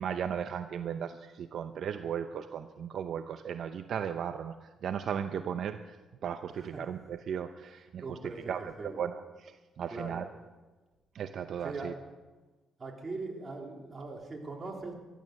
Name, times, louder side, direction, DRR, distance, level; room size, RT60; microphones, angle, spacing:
voice 1, 0.0-6.0 6.2-8.2 8.5-10.3 11.1-11.9, right 8 dB, 65° right, 8 dB, 0.7 m, -36 dB
voice 2, 8.0-9.0 9.9-10.3 11.6-11.9 12.8-14.9, right 3 dB, 30° right, 0 dB, 3.4 m, -40 dB
14.0 x 13.0 x 6.6 m, 1.2 s
cardioid pair, 90°, 0 cm